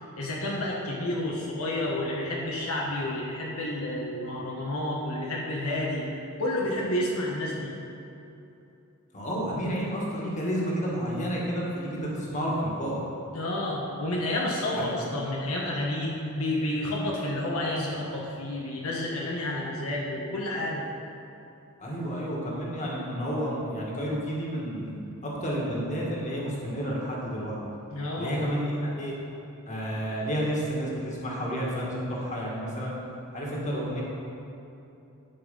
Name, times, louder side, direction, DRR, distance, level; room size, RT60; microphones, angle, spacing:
voice 1, 0.2-7.7 13.3-20.9 27.9-28.4, left 1 dB, 75° left, -3 dB, 1.2 m, -30 dB
voice 2, 9.1-13.0 14.7-14.9 21.8-24.9 25.2-27.6 28.2-29.1 29.7-32.9 33.3-34.0, equal, 35° left, -4 dB, 1.9 m, -30 dB
11.0 x 5.5 x 5.5 m, 2.9 s
head